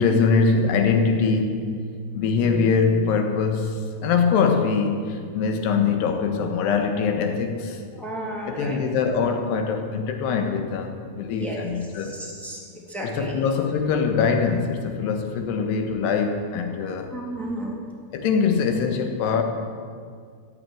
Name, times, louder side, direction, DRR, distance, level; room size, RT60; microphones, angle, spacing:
voice 1, 0.0-1.6 2.1-8.0 8.5-12.2 13.0-17.1 18.1-19.4, left 5 dB, 75° left, 5 dB, 3.3 m, -23 dB
voice 2, 8.0-8.8 11.3-11.6 12.0-12.6 12.9-13.4 17.1-17.7, right 1 dB, ahead, -3 dB, 1.8 m, -33 dB
15.0 x 8.8 x 9.1 m, 2.1 s
omnidirectional pair, 5.0 m